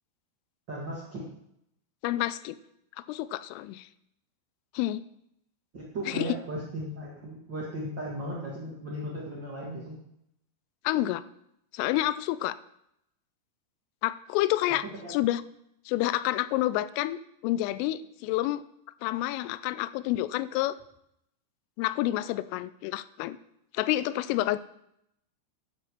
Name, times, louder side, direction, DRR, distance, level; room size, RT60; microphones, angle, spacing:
voice 1, 0.7-1.2 5.7-10.0 14.8-15.1, right 1 dB, 75° right, -5 dB, 1.0 m, -36 dB
voice 2, 2.0-2.6 3.1-3.9 4.7-5.0 6.1-6.3 10.8-11.2 11.7-12.6 14.0-14.8 15.1-15.4 15.9-18.6 19.0-20.8 21.8-23.4 23.7-24.6, left 15 dB, 85° left, 16 dB, 3.1 m, -28 dB
11.5 x 5.6 x 7.4 m, 0.76 s
omnidirectional pair, 5.8 m